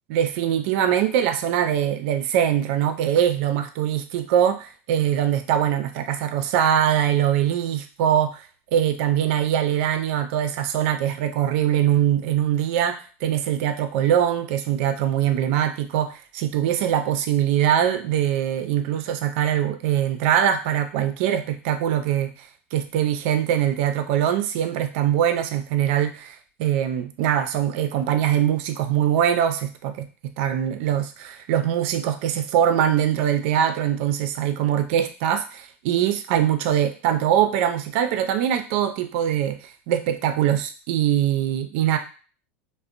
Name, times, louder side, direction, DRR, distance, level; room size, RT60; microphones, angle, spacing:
voice 1, 0.1-8.5 8.7-42.0, right 10 dB, 65° right, 8 dB, 0.4 m, -22 dB
2.5 x 2.0 x 2.4 m, 0.36 s
supercardioid pair, 110°, 7 cm